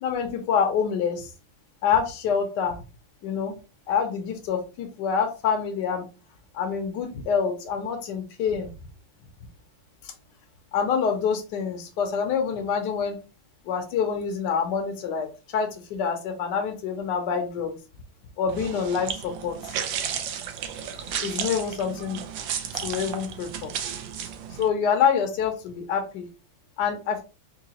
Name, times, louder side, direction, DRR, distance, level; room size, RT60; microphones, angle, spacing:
voice 1, 0.0-1.3 1.8-2.8 3.2-3.6 3.9-6.0 6.5-8.7 10.0-10.1 10.7-13.2 13.7-17.8 18.4-19.6 21.2-22.2 22.8-23.7 24.6-26.3 26.8-27.2, left 6 dB, 70° left, 4 dB, 1.1 m, -26 dB
sound 1, 18.5-24.7, right 8 dB, 75° right, 1.2 m, -33 dB
3.8 x 2.6 x 2.8 m, 0.31 s
omnidirectional pair, 2.1 m